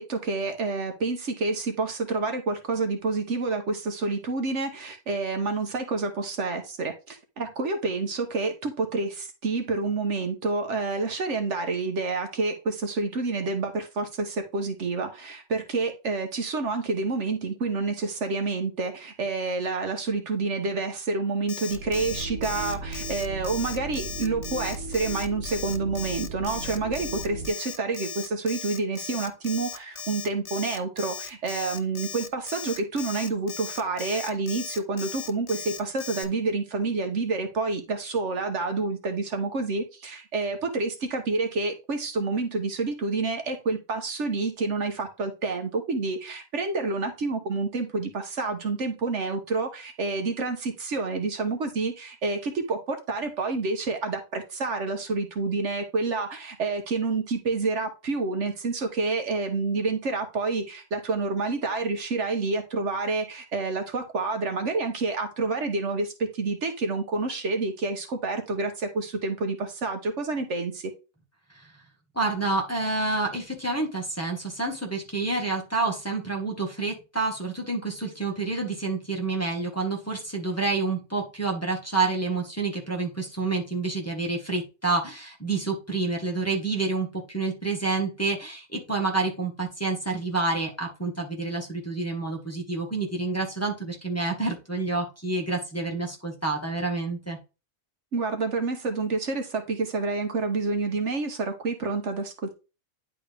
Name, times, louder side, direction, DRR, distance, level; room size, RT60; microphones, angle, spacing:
voice 1, 0.0-70.9 98.1-102.5, right 3 dB, 60° right, 6 dB, 1.2 m, -28 dB
Alarm, 21.5-36.2, left 7 dB, 60° left, 1.0 m, -37 dB
sound 1, 21.7-27.5, right 2 dB, 90° right, 1.5 m, -36 dB
voice 2, 72.1-97.4, right 3 dB, 10° left, -1 dB, 1.4 m, -28 dB
9.9 x 4.2 x 3.4 m, 0.30 s
omnidirectional pair, 1.4 m